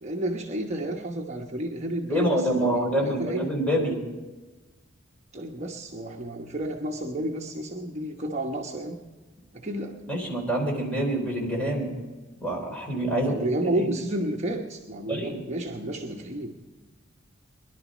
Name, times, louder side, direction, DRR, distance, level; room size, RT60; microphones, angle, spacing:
voice 1, 0.0-3.6 5.3-9.0 9.5-10.0 13.2-16.6, right 1 dB, 35° right, 0 dB, 1.1 m, -31 dB
voice 2, 2.1-4.0 10.1-11.9 12.4-13.9 15.1-15.4, right 1 dB, 5° left, -1 dB, 3.8 m, -26 dB
20.5 x 11.5 x 5.0 m, 1.2 s
head